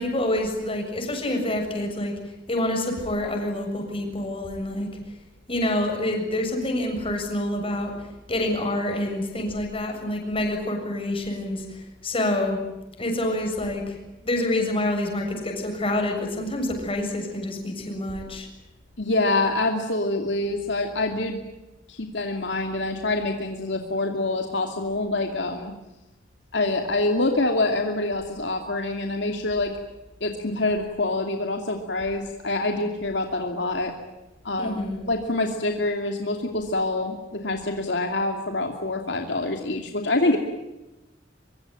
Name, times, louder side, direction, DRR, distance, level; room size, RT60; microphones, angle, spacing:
voice 1, 0.0-2.1 2.5-4.9 5.5-7.9 8.3-12.6 13.0-14.0 14.2-18.5 34.6-35.0, left 1 dB, 30° left, 3 dB, 7.2 m, -27 dB
voice 2, 19.0-21.4 21.9-25.7 26.5-29.7 30.2-33.9 34.4-34.8 35.1-40.4, left 2 dB, 70° left, 3 dB, 2.6 m, -26 dB
24.0 x 24.0 x 9.1 m, 1.0 s
head